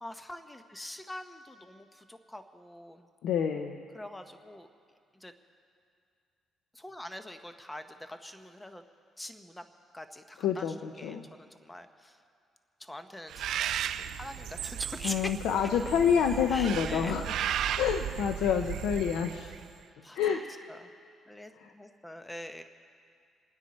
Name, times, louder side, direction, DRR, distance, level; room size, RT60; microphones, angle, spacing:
voice 1, 0.0-3.0 3.9-4.7 5.2-5.3 6.7-8.8 9.2-9.7 9.9-10.6 10.9-12.2 12.8-15.5 16.5-17.2 17.4-17.5 20.0-20.2 20.7-20.9 21.3-22.6, left 1 dB, 10° left, 8 dB, 0.9 m, -44 dB
voice 2, 3.2-3.8 10.4-11.3 15.0-17.2 17.8-19.5 20.1-20.4 21.6-21.7, left 8 dB, 85° left, 6 dB, 0.7 m, -28 dB
Bird, 13.3-19.7, right 10 dB, 80° right, 0.4 m, -35 dB
28.5 x 9.8 x 4.3 m, 2.3 s
cardioid pair, 90°, 0 cm